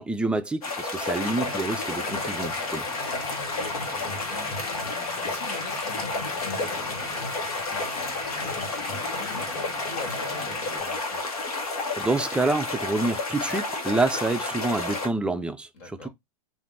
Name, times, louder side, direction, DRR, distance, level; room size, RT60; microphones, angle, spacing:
voice 1, 0.0-2.9 12.0-15.7 16.0-16.1, right 2 dB, 5° right, 0.4 m, -27 dB
sound 1, 0.6-15.1, left 3 dB, 80° left, 1.3 m, -31 dB
sound 2, 1.2-10.8, left 2 dB, 25° left, 1.5 m, -38 dB
voice 2, 3.1-11.2 15.7-16.1, left 3 dB, 55° left, 2.0 m, -44 dB
3.6 x 2.6 x 3.6 m
hypercardioid pair, 100°, 19 cm